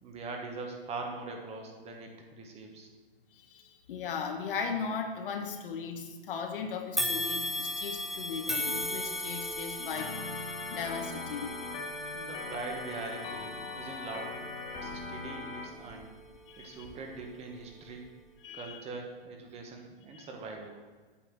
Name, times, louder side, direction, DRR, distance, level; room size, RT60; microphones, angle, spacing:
voice 1, 0.0-2.9 12.1-14.4 14.7-16.1 16.6-18.1 18.5-20.7, right 3 dB, 20° right, 2 dB, 1.2 m, -42 dB
voice 2, 3.3-11.6 16.5-16.8 18.4-18.8 20.1-20.3, left 6 dB, 65° left, 4 dB, 1.4 m, -38 dB
sound 1, 7.0-16.3 16.8-17.0 17.9-18.0, left 1 dB, ahead, 0.4 m, -37 dB
Organ, 9.9-15.7, left 3 dB, 35° left, 2.1 m, -40 dB
8.5 x 4.7 x 7.2 m, 1.3 s
hypercardioid pair, 135°, 30 cm